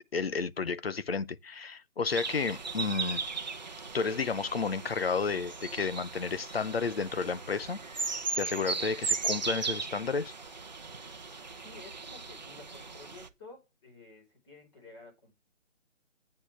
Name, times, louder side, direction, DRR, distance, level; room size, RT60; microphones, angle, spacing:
voice 1, 0.1-3.2 3.9-7.8 8.4-10.3, left 5 dB, 50° left, 0.6 m, -31 dB
sound 1, 2.1-13.3, right 4 dB, 35° right, 0.8 m, -37 dB
voice 2, 11.6-15.3, left 3 dB, 20° left, 4.1 m, -52 dB
8.8 x 8.3 x 3.2 m
hypercardioid pair, 175°, 38 cm